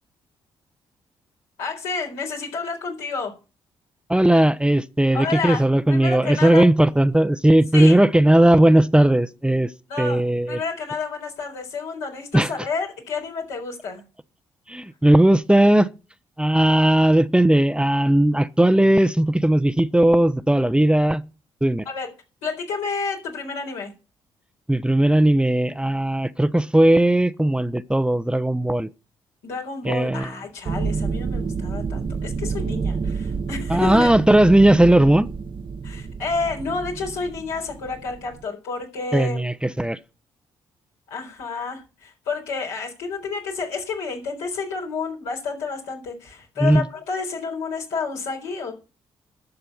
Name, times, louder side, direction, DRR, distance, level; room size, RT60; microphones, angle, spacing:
voice 1, 1.6-3.3 5.1-6.7 7.7-8.0 9.9-10.2 10.5-14.0 21.9-22.1 22.4-23.9 29.4-34.1 35.8-39.5 41.1-48.7, left 4 dB, 80° left, 4.1 m, -30 dB
voice 2, 4.1-9.7 10.0-10.6 12.3-12.5 14.7-15.9 16.4-21.2 21.6-21.8 24.7-28.9 29.8-30.3 33.7-35.3 39.1-40.0 46.6-46.9, right 1 dB, 10° right, 0.7 m, -17 dB
sound 1, 30.7-38.4, right 5 dB, 45° right, 0.9 m, -29 dB
11.5 x 6.8 x 6.9 m
hypercardioid pair, 45°, 12 cm